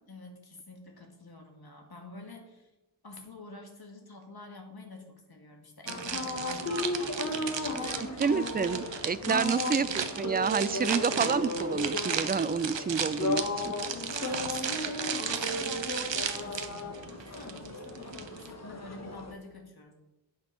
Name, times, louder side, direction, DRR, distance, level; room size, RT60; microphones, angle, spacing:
voice 1, 0.1-2.7 3.0-8.0 9.3-9.7 13.9-19.9, left 2 dB, 60° left, 2 dB, 2.0 m, -48 dB
sound 1, 5.9-19.3, left 2 dB, 40° left, 1.3 m, -35 dB
sound 2, 5.9-18.5, right 7 dB, 85° right, 0.9 m, -35 dB
voice 2, 8.0-13.7, right 5 dB, 25° right, 17 dB, 0.3 m, -29 dB
8.8 x 6.1 x 5.6 m, 1.0 s
wide cardioid pair, 80°, 43 cm